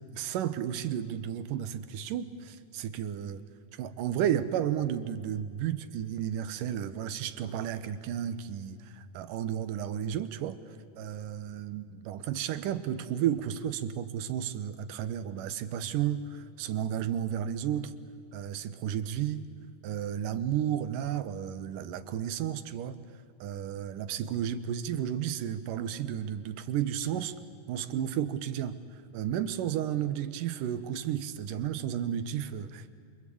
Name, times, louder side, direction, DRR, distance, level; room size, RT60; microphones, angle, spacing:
voice 1, 0.1-3.4 3.7-10.6 11.0-17.9 18.3-19.5 19.8-23.0 23.4-27.4 27.7-28.8 29.1-32.9, right 10 dB, 80° right, 11 dB, 2.6 m, -32 dB
28.0 x 24.5 x 8.5 m, 2.3 s
omnidirectional pair, 3.8 m